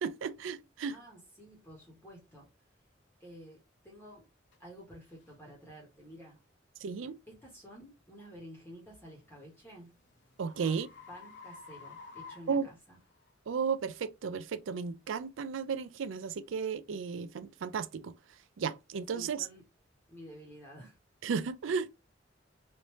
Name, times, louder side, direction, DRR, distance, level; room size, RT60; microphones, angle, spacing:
voice 1, 0.0-1.0 6.8-7.2 10.4-10.9 12.5-12.7 13.5-18.1 18.6-19.5 21.2-21.9, right 6 dB, 80° right, 0.4 m, -34 dB
voice 2, 0.8-2.5 3.2-4.3 4.6-6.4 7.3-9.9 10.6-13.0 19.1-19.6 20.1-21.0, equal, 10° left, 1.1 m, -51 dB
sound 1, 4.5-4.6 5.2-5.4 6.0-6.2 8.8-13.3, left 4 dB, 65° left, 1.0 m, -52 dB
3.2 x 2.7 x 3.0 m
head